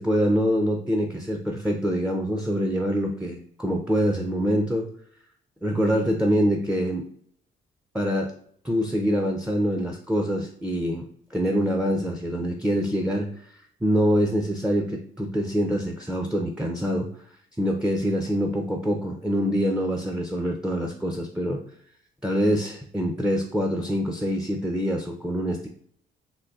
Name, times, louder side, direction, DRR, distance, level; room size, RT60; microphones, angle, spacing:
voice 1, 0.0-4.9 5.6-7.0 7.9-8.3 8.6-13.3 13.8-17.1 17.6-21.6 22.2-25.7, equal, 5° right, 2 dB, 0.4 m, -25 dB
3.8 x 2.6 x 2.3 m, 0.63 s
cardioid pair, 90°, 20 cm